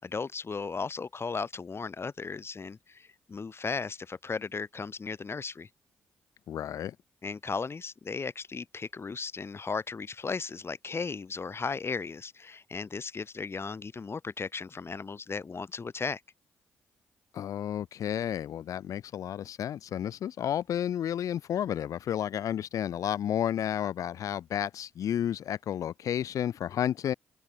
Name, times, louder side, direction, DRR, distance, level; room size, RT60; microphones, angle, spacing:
voice 1, 0.0-5.7 7.2-16.2, left 4 dB, 40° left, 6.6 m, -36 dB
voice 2, 6.5-7.0 17.3-27.1, left 10 dB, 60° left, 0.8 m, -31 dB
open air
hypercardioid pair, 40°, 6 cm